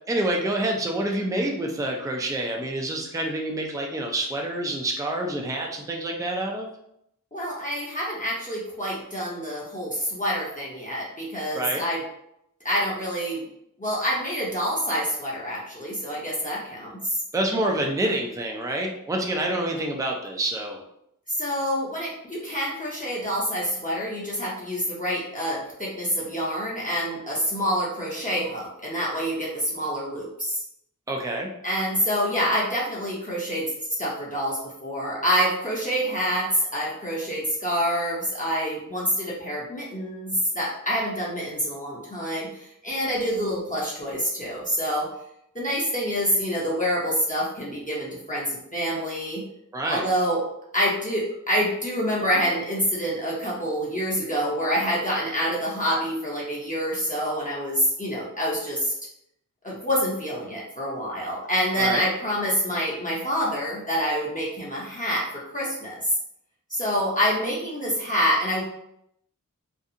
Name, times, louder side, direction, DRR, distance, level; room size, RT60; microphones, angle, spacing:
voice 1, 0.1-6.7 11.5-11.8 17.3-20.8 31.1-31.5 49.7-50.1 61.8-62.0, right 1 dB, 10° right, 1 dB, 0.4 m, -27 dB
voice 2, 7.3-12.0 12.6-13.4 13.8-17.2 21.3-30.6 31.6-33.7 34.0-45.1 45.5-49.4 49.9-50.4 50.7-58.9 59.6-66.2 66.7-68.6, equal, 25° left, -6 dB, 0.7 m, -27 dB
2.5 x 2.3 x 2.7 m, 0.76 s
wide cardioid pair, 50°, 34 cm